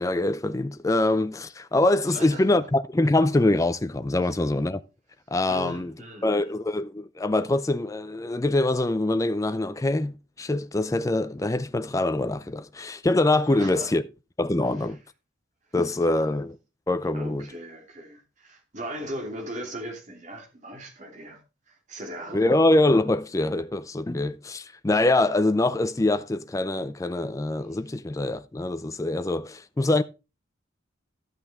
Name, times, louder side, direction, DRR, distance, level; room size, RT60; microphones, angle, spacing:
voice 1, 0.0-4.8 5.3-5.9 6.2-14.0 14.4-15.0 15.7-16.6 16.9-17.5 22.3-30.0, left 2 dB, 15° left, 0.4 m, -24 dB
voice 2, 2.1-2.7 4.2-4.3 5.5-6.5 13.5-13.9 14.6-14.7 16.0-16.3 17.1-21.4 21.7-22.6, equal, 35° right, 2.8 m, -39 dB
12.0 x 8.2 x 3.5 m
head